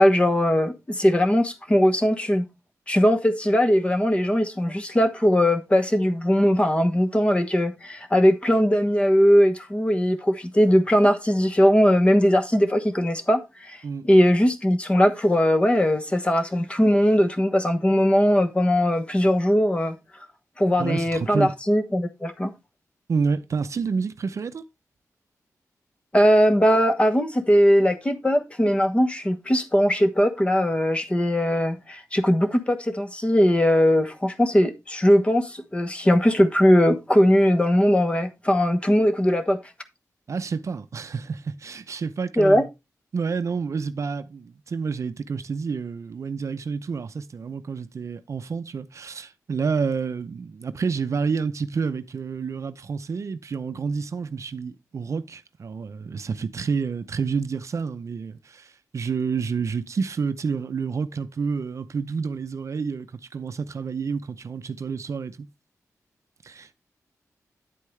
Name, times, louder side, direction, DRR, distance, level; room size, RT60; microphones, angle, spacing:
voice 1, 0.0-2.5 2.9-13.8 14.0-20.0 20.6-22.5 26.1-39.6 42.4-42.6, equal, 20° left, 1.2 m, -20 dB
voice 2, 20.8-21.5 23.1-24.6 40.3-42.7 43.1-65.5 66.4-66.7, right 5 dB, 55° right, 0.6 m, -29 dB
9.4 x 8.3 x 3.2 m
wide cardioid pair, 125°, 6 cm